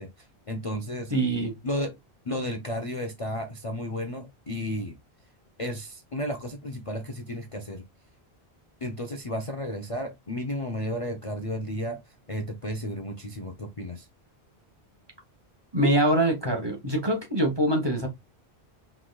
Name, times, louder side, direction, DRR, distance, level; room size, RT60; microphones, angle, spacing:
voice 1, 0.0-1.1 1.6-1.9 2.3-5.0 5.6-7.8 8.8-14.1, equal, 35° left, 0.7 m, -33 dB
voice 2, 1.1-1.5 15.7-18.1, right 1 dB, 25° right, 1.5 m, -24 dB
4.7 x 3.9 x 2.3 m
omnidirectional pair, 1.1 m